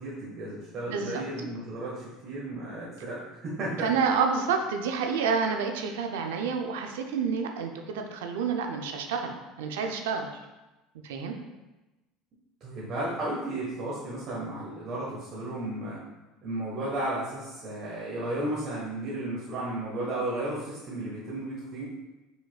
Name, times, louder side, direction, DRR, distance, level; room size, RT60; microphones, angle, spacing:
voice 1, 0.0-3.9 12.6-16.0 16.4-21.8, right 1 dB, 50° right, -7 dB, 1.2 m, -34 dB
voice 2, 0.9-1.2 3.8-10.3 11.0-11.4, right 5 dB, 85° right, 4 dB, 0.4 m, -29 dB
5.0 x 4.0 x 2.3 m, 1.1 s
supercardioid pair, 95°, 0 cm